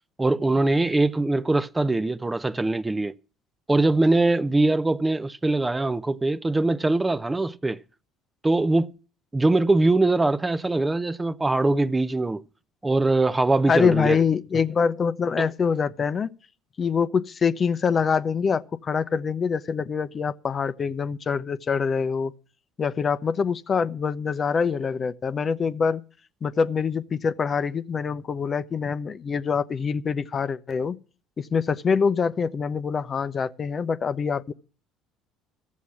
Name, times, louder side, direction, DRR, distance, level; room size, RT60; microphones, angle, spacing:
voice 1, 0.2-3.1 3.7-7.8 8.4-9.0 9.3-12.4 12.8-14.2 15.4-15.5, right 2 dB, 15° right, 0.5 m, -22 dB
voice 2, 13.7-16.4 16.8-22.3 22.8-26.0 26.4-31.0 31.4-34.5, left 6 dB, 40° left, 0.6 m, -25 dB
14.0 x 7.4 x 7.1 m
hypercardioid pair, 60°, 0 cm